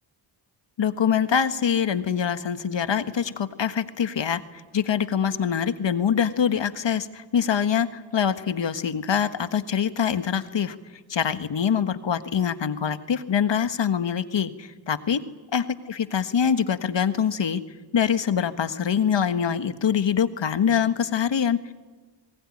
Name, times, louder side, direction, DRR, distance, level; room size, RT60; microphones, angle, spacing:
voice 1, 0.8-10.8 11.1-15.2 15.5-17.6 17.9-21.7, left 7 dB, 60° left, 10 dB, 1.6 m, -24 dB
26.5 x 21.0 x 9.9 m, 1.4 s
cardioid pair, 60°, 48 cm